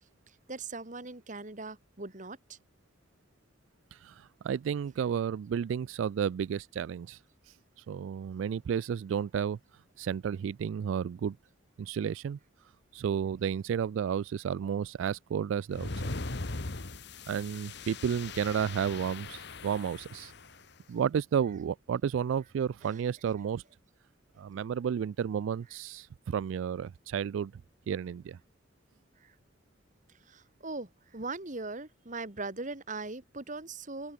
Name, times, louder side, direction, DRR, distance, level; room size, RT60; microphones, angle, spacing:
voice 1, 0.3-2.6 22.8-23.0 29.2-29.3 30.3-34.1, right 3 dB, 40° right, 2.1 m, -40 dB
voice 2, 3.9-7.2 7.9-9.6 10.0-11.4 11.8-12.4 12.9-16.1 17.3-20.3 20.9-23.6 24.4-27.5 27.9-28.4, right 7 dB, 80° right, 0.3 m, -32 dB
sound 1, 15.7-20.6, left 3 dB, 60° left, 1.5 m, -40 dB
head